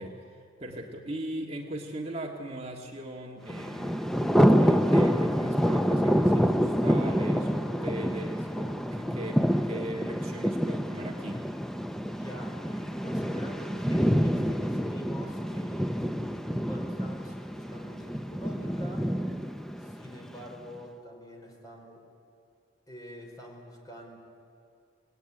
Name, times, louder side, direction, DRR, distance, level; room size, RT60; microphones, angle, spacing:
voice 1, 0.0-4.2 4.6-11.4, right 1 dB, 35° right, 0 dB, 1.9 m, -39 dB
Thunder, 3.5-20.5, equal, ahead, 0.7 m, -27 dB
voice 2, 12.1-16.4 16.7-19.0 19.8-22.0 22.9-24.2, equal, 20° left, 0 dB, 4.9 m, -46 dB
26.5 x 19.0 x 9.9 m, 2.4 s
head